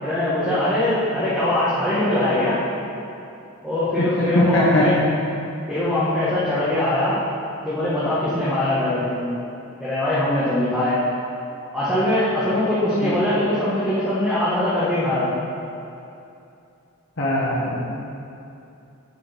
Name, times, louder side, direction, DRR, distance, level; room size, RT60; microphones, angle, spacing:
voice 1, 0.0-2.6 3.6-4.9 5.7-7.2 7.6-9.3 9.8-11.0 11.7-15.4, left 1 dB, 5° right, -12 dB, 1.5 m, -22 dB
voice 2, 3.9-4.9 12.9-13.1 17.2-17.8, left 1 dB, 60° left, -9 dB, 1.5 m, -21 dB
9.7 x 8.3 x 3.5 m, 2.7 s
head